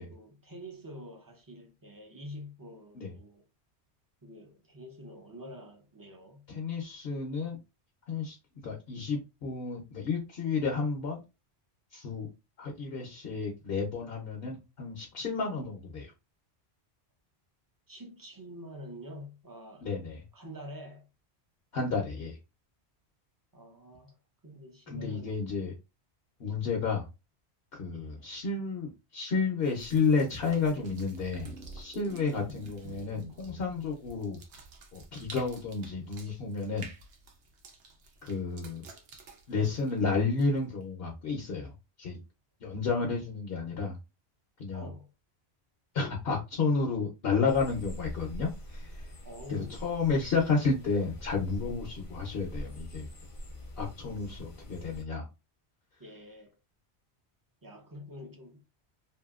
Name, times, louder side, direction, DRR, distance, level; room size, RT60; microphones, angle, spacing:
voice 1, 0.0-3.4 4.2-6.5 17.9-19.9 20.3-21.1 23.5-24.2 24.4-25.6 27.9-28.3 44.7-45.1 49.2-49.8 56.0-56.6 57.6-58.6, left 1 dB, 30° right, 0.4 m, -46 dB
voice 2, 6.5-7.6 8.1-8.4 8.6-11.2 11.9-12.3 12.6-16.1 19.8-20.2 21.7-22.4 24.9-25.7 26.4-27.1 27.7-34.4 34.9-36.9 38.2-38.8 39.5-41.7 42.0-42.2 42.6-44.0 44.6-44.9 45.9-49.1 49.5-53.1 53.8-55.2, left 4 dB, 65° left, 0.9 m, -31 dB
sound 1, 29.6-40.8, right 3 dB, 85° right, 1.0 m, -52 dB
sound 2, 31.2-33.6, right 1 dB, 60° right, 1.0 m, -47 dB
sound 3, 47.5-55.0, equal, 40° left, 0.5 m, -44 dB
2.7 x 2.6 x 2.3 m
omnidirectional pair, 1.1 m